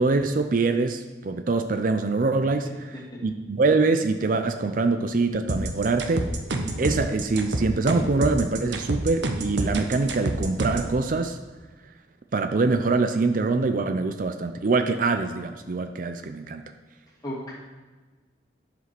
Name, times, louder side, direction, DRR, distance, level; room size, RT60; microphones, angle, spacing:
voice 1, 0.0-2.7 3.2-6.3 6.8-11.4 12.3-16.6, right 3 dB, 50° right, 7 dB, 0.5 m, -24 dB
voice 2, 2.9-3.2 17.2-17.5, equal, 20° left, -6 dB, 2.8 m, -35 dB
sound 1, 5.5-10.9, right 1 dB, 90° right, 1.0 m, -27 dB
11.0 x 5.0 x 6.0 m, 1.3 s
head